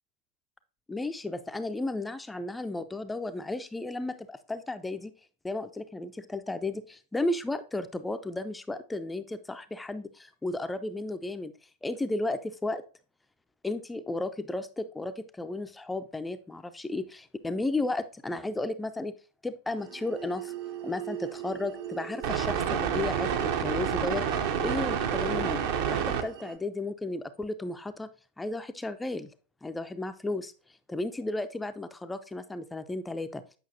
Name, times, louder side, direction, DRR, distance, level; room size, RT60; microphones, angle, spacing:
voice 1, 0.9-5.1 5.4-11.5 11.8-12.8 13.6-19.1 19.4-20.5 20.8-25.6 25.9-28.1 28.4-29.3 29.6-30.5 30.9-33.4, left 2 dB, 10° left, 10 dB, 0.4 m, -34 dB
sound 1, 19.8-26.5, right 8 dB, 50° right, 0.7 m, -30 dB
8.4 x 5.6 x 2.7 m, 0.36 s
figure-of-eight pair, 90°, 0 cm